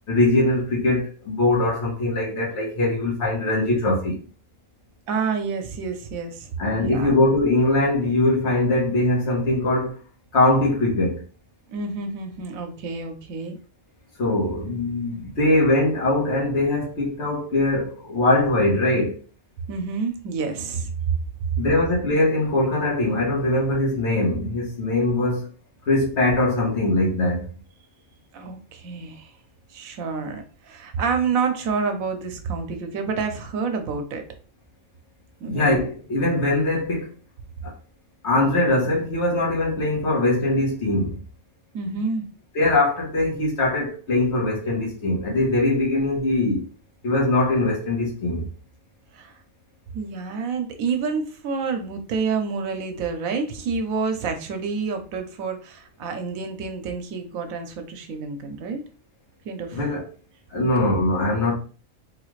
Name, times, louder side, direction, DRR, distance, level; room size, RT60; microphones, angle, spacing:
voice 1, 0.1-4.2 6.6-10.0 10.3-11.2 14.2-19.2 21.6-25.5 25.9-27.5 35.5-37.1 37.6-37.7 38.2-41.2 42.5-46.6 47.0-48.5 59.7-60.0 60.5-61.5, left 2 dB, 55° left, 1.4 m, -21 dB
voice 2, 5.1-6.5 6.8-7.1 11.7-13.6 19.7-20.9 28.3-29.3 29.7-34.2 35.4-35.7 41.7-42.3 49.1-49.3 49.9-58.8 59.4-59.8 60.6-60.9, right 5 dB, 85° right, 1.1 m, -28 dB
3.6 x 2.4 x 3.1 m
omnidirectional pair, 1.4 m